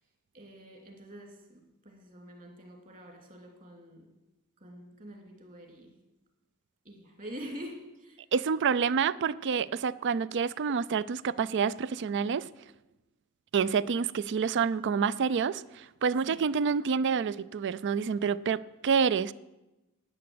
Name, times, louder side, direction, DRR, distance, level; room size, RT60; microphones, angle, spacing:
voice 1, 0.3-1.6 1.8-4.1 4.6-5.9 6.8-8.2 16.2-16.4, equal, 35° right, 2.9 m, -46 dB
voice 2, 8.3-12.5 13.5-19.3, right 6 dB, 55° right, 0.4 m, -28 dB
11.5 x 9.4 x 7.8 m
head